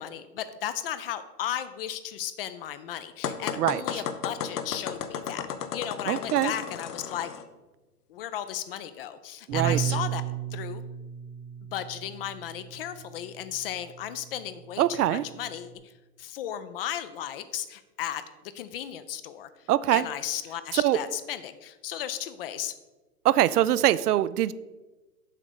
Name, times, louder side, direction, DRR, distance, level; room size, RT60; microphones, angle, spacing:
voice 1, 0.0-5.5 5.7-7.3 8.1-10.2 10.5-10.8 11.7-15.9 16.2-18.2 18.5-22.7, left 11 dB, 40° left, 12 dB, 0.4 m, -35 dB
sound 1, 3.2-7.4, left 7 dB, 75° left, 0.9 m, -34 dB
voice 2, 6.1-6.5 9.5-9.8 14.8-15.2 19.7-20.1 20.7-21.0 23.2-24.5, right 13 dB, 75° right, 17 dB, 0.5 m, -23 dB
Bass guitar, 9.5-15.7, right 10 dB, 15° right, 0.9 m, -35 dB
7.3 x 3.9 x 6.7 m, 1.2 s
hypercardioid pair, 120°, 47 cm